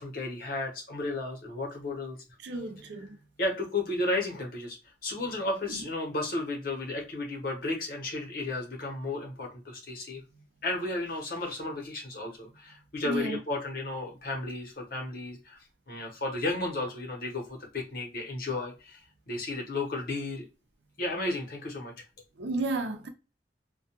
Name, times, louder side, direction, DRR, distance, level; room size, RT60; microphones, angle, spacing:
voice 1, 0.0-2.2 3.4-10.2 10.6-15.6 15.9-19.0 19.3-20.5 21.0-21.9, left 2 dB, 50° left, 0.9 m, -33 dB
voice 2, 2.4-3.2 5.7-5.8 13.0-13.4 22.4-23.1, right 2 dB, 75° right, 0.6 m, -32 dB
2.2 x 2.2 x 2.8 m
head